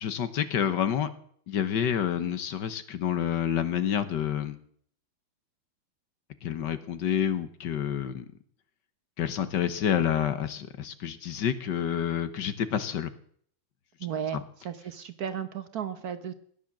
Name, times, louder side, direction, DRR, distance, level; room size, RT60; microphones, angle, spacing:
voice 1, 0.0-1.1 1.5-4.6 6.4-8.3 9.2-13.1 14.3-14.4, left 9 dB, 65° left, 12 dB, 1.6 m, -28 dB
voice 2, 14.0-14.4 14.6-16.3, right 8 dB, 60° right, 11 dB, 1.2 m, -34 dB
17.0 x 10.5 x 7.3 m, 0.62 s
omnidirectional pair, 2.1 m